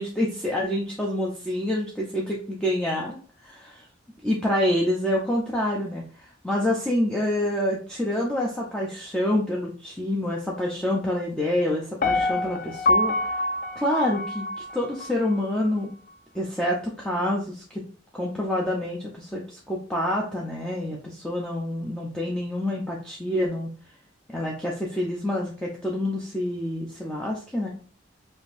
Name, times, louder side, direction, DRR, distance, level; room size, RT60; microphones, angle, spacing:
voice 1, 0.0-3.7 4.2-13.1 13.8-14.5 14.7-15.9 16.3-17.8 18.1-23.7 24.3-27.7, left 1 dB, 5° left, -4 dB, 0.6 m, -27 dB
Piano, 12.0-15.1 15.5-15.6, left 2 dB, 45° left, 0.3 m, -25 dB
5.1 x 2.7 x 2.5 m, 0.42 s
head